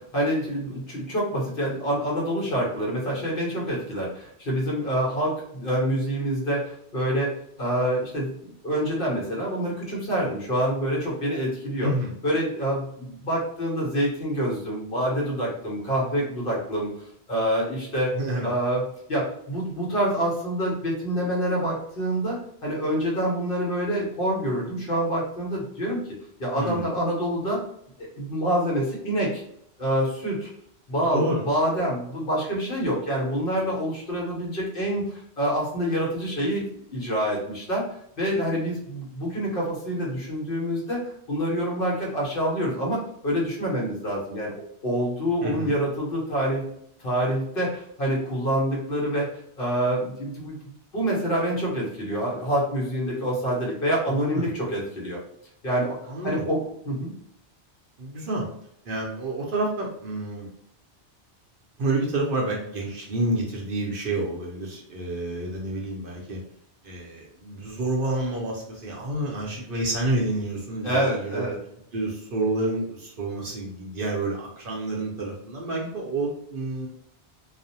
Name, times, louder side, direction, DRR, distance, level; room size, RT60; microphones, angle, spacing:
voice 1, 0.1-7.3 7.6-11.9 12.2-16.9 17.3-18.1 18.4-18.8 19.1-26.0 26.4-27.6 28.0-29.4 29.8-30.5 30.9-36.6 36.9-37.8 38.2-44.5 44.8-46.6 47.0-49.3 49.6-50.6 50.9-55.2 55.6-56.0 56.2-57.1 70.8-71.6, equal, 55° left, -4 dB, 1.0 m, -26 dB
voice 2, 11.8-12.1 18.1-18.5 26.5-26.9 30.9-31.5 45.4-45.7 54.1-54.5 56.1-56.4 58.0-58.5 58.8-60.5 61.8-66.4 66.8-71.5 71.9-76.9, right 2 dB, 60° right, -2 dB, 0.7 m, -29 dB
2.4 x 2.0 x 2.7 m, 0.70 s
omnidirectional pair, 1.1 m